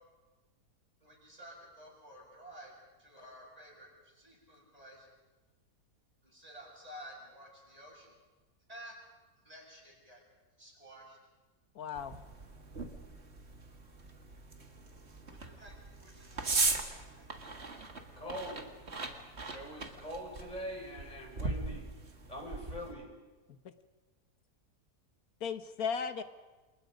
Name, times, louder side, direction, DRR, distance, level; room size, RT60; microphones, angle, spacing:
voice 1, 1.0-2.7 3.0-5.1 6.2-8.1 8.7-8.9 9.4-10.2 10.6-11.2 15.3-17.3 26.1-26.2, equal, 20° right, -2 dB, 7.7 m, -52 dB
voice 2, 11.7-12.2 23.5-23.6 25.4-26.2, left 6 dB, 65° left, 10 dB, 1.7 m, -36 dB
sound 1, 12.0-22.9, right 3 dB, 40° right, 2.3 m, -39 dB
voice 3, 18.2-18.7 19.5-21.9 22.3-23.1, equal, 25° left, 1 dB, 5.9 m, -43 dB
29.0 x 28.5 x 5.3 m, 1.2 s
omnidirectional pair, 1.7 m